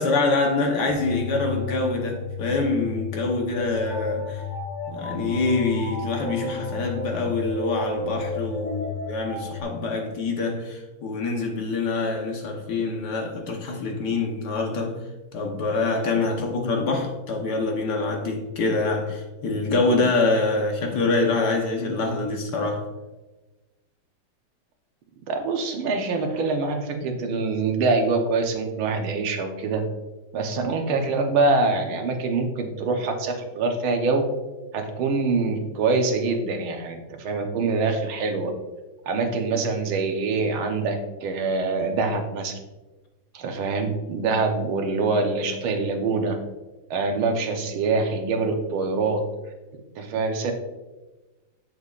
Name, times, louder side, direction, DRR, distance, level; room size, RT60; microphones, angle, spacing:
voice 1, 0.0-4.4 4.9-15.0 15.3-22.9, left 3 dB, 60° left, 2 dB, 1.4 m, -25 dB
sound 1, 0.9-9.6, left 3 dB, 80° left, 0.4 m, -32 dB
voice 2, 25.3-29.8 30.3-34.2 34.7-38.5 39.1-42.6 43.3-46.4 46.9-49.2 50.0-50.5, right 3 dB, 80° right, 4 dB, 1.8 m, -24 dB
8.0 x 7.1 x 2.4 m, 1.1 s
omnidirectional pair, 2.2 m